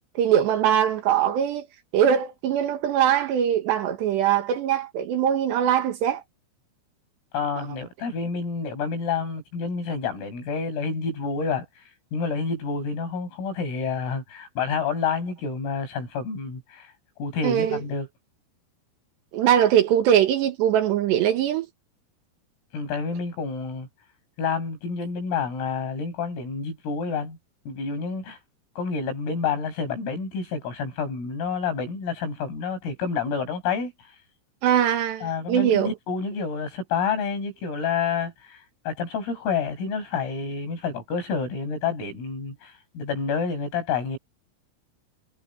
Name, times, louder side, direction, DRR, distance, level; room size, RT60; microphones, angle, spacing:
voice 1, 0.2-1.7 1.9-6.2 7.6-7.7 17.4-17.8 19.3-21.7 34.6-35.9, right 9 dB, 65° right, 3.4 m, -22 dB
voice 2, 7.3-11.9 12.1-16.9 17.2-18.1 22.7-23.9 24.4-27.4 27.7-28.4 28.8-34.1 35.2-44.2, left 5 dB, 90° left, 10.5 m, -29 dB
omnidirectional pair, 5.8 m